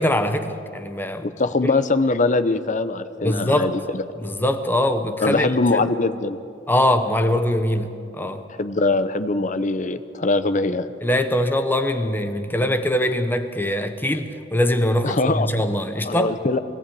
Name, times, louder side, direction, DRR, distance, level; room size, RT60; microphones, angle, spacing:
voice 1, 0.0-1.3 1.6-1.7 3.2-3.7 4.2-5.9 6.7-8.4 11.0-16.3, left 1 dB, 10° left, 8 dB, 0.9 m, -22 dB
voice 2, 1.2-4.0 5.2-6.4 8.6-10.9 15.0-15.5 16.0-16.6, left 3 dB, 45° left, 12 dB, 0.8 m, -22 dB
22.0 x 14.5 x 8.5 m, 2.5 s
head